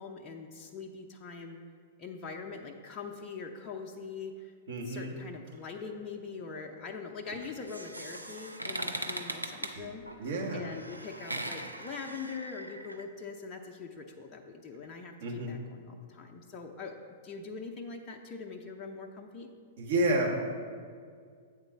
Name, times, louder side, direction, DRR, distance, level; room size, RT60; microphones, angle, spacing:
voice 1, 0.0-1.6 2.0-4.5 4.8-17.0 17.2-19.5, left 4 dB, 30° left, 1 dB, 0.5 m, -43 dB
voice 2, 4.7-5.1 9.7-9.9 10.2-10.6 15.2-15.5 19.8-20.4, right 1 dB, 55° right, -2 dB, 1.5 m, -30 dB
sound 1, 7.4-13.0, right 1 dB, 90° right, 0.5 m, -40 dB
8.0 x 4.0 x 5.6 m, 2.1 s
figure-of-eight pair, 105°, 0 cm